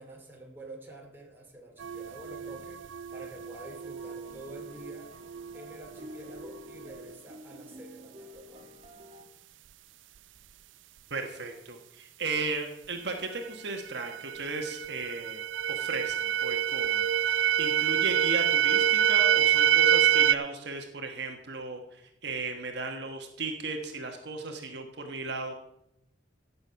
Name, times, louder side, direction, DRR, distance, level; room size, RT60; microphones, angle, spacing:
voice 1, 0.0-2.8 3.1-5.1 5.5-8.7, right 1 dB, 10° right, 0 dB, 2.5 m, -47 dB
sound 1, 1.8-7.2 13.4-13.5 13.9-20.4, right 10 dB, 85° right, 0.4 m, -27 dB
sound 2, 3.7-9.2, left 1 dB, 35° right, 1.6 m, -50 dB
voice 2, 11.1-15.4 15.7-25.5, right 3 dB, 60° right, 4 dB, 1.2 m, -36 dB
16.0 x 6.9 x 5.7 m, 0.85 s
head